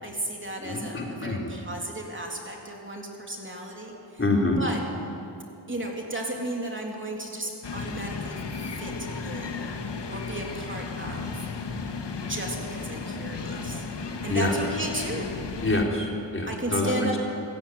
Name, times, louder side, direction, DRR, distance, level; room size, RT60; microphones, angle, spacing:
voice 1, 0.0-4.2 4.6-4.8 5.7-8.9 9.2-9.6 10.1-11.5 12.3-13.9 14.2-15.3 16.5-17.2, right 1 dB, 25° right, 0 dB, 3.5 m, -34 dB
voice 2, 0.6-1.5 4.2-4.6 14.3-14.5 15.6-17.2, left 2 dB, 30° left, -1 dB, 4.1 m, -26 dB
sound 1, 7.6-15.8, left 4 dB, 70° left, 2.1 m, -34 dB
29.0 x 16.5 x 9.6 m, 2.8 s
wide cardioid pair, 115°, 43 cm